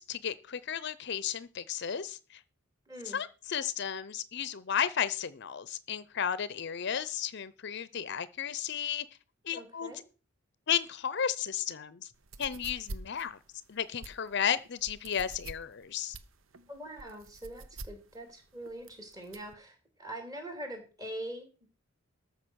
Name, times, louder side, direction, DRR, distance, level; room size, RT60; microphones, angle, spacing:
voice 1, 0.0-2.4 3.0-9.1 9.4-9.9 10.7-12.1 12.4-13.4 13.7-16.2, left 8 dB, 55° left, 17 dB, 0.6 m, -33 dB
voice 2, 2.9-3.2 9.5-10.0 16.7-21.7, right 1 dB, 20° right, 5 dB, 3.0 m, -43 dB
sound 1, 12.1-19.5, right 2 dB, 75° right, 0.9 m, -46 dB
13.5 x 5.8 x 6.3 m, 0.35 s
head